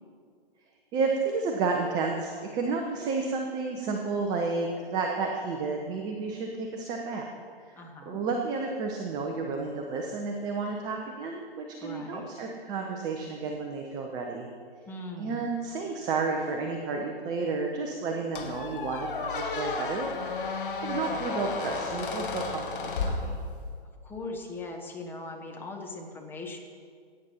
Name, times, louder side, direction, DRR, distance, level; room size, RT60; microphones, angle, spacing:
voice 1, 0.9-7.3 7.7-7.8 8.1-14.5 15.2-20.1 20.5-23.3, right 4 dB, 15° right, 2 dB, 0.6 m, -31 dB
voice 2, 7.7-8.2 11.8-12.3 14.9-15.5 24.0-26.6, left 2 dB, 5° left, 1 dB, 1.1 m, -40 dB
Squeak, 18.4-23.9, left 4 dB, 55° left, 1.4 m, -33 dB
16.5 x 8.9 x 4.3 m, 2.1 s
figure-of-eight pair, 130°, 30 cm